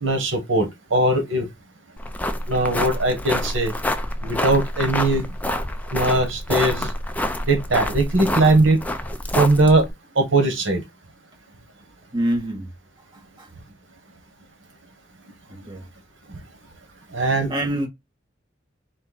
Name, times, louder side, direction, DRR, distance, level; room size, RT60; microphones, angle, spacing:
voice 1, 0.0-1.5 2.5-3.7 4.2-5.2 5.9-6.9 7.5-8.8 9.3-9.8 10.1-10.8 17.1-17.5, right 2 dB, 90° right, 1.4 m, -20 dB
sound 1, 2.0-9.9, left 1 dB, 10° left, 0.5 m, -27 dB
voice 2, 12.1-12.7 13.1-13.5 15.5-15.9 17.5-17.9, right 1 dB, 25° right, 1.5 m, -26 dB
4.4 x 2.7 x 4.1 m
head